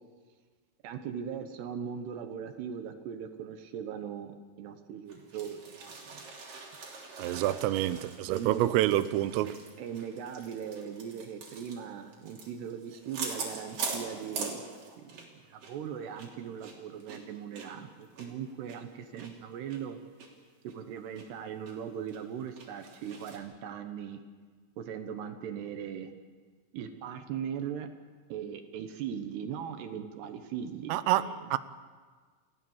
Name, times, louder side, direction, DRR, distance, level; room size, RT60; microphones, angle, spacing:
voice 1, 0.8-6.2 8.3-8.6 9.8-14.6 15.0-20.0 20.6-24.2 24.8-26.1 26.7-27.9 28.3-31.3, right 8 dB, 70° right, 2.7 m, -39 dB
sound 1, 5.1-15.4 15.6-15.8 16.1-19.3 19.7-19.8 20.2-20.3 20.7-21.3 21.7-21.8 22.1-23.4, right 4 dB, 45° right, 4.5 m, -43 dB
voice 2, 7.2-9.6 30.9-31.6, right 14 dB, 90° right, 3.4 m, -27 dB
29.5 x 15.0 x 7.3 m
omnidirectional pair, 5.8 m